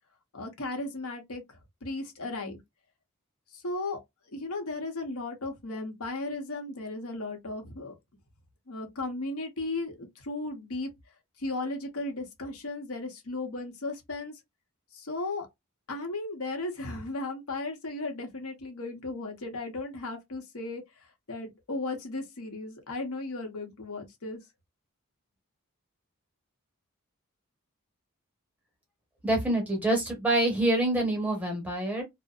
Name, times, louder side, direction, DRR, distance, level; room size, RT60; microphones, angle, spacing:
voice 1, 0.3-2.6 3.5-4.0 4.3-8.0 8.7-10.9 11.4-14.4 14.9-15.5 15.9-24.4, left 2 dB, 80° left, 0.8 m, -36 dB
voice 2, 29.2-32.0, right 1 dB, 5° right, 0.9 m, -26 dB
2.5 x 2.0 x 2.3 m
head